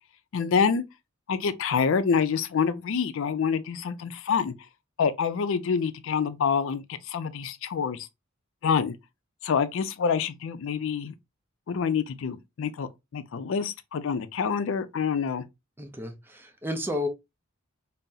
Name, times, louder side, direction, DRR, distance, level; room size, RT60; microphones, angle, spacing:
voice 1, 0.3-0.8 1.3-4.5 5.0-8.1 8.6-8.9 9.4-11.1 11.7-15.4, left 6 dB, 65° left, 0.4 m, -27 dB
voice 2, 15.8-17.1, left 1 dB, 10° right, 0.5 m, -32 dB
3.7 x 2.0 x 2.7 m
head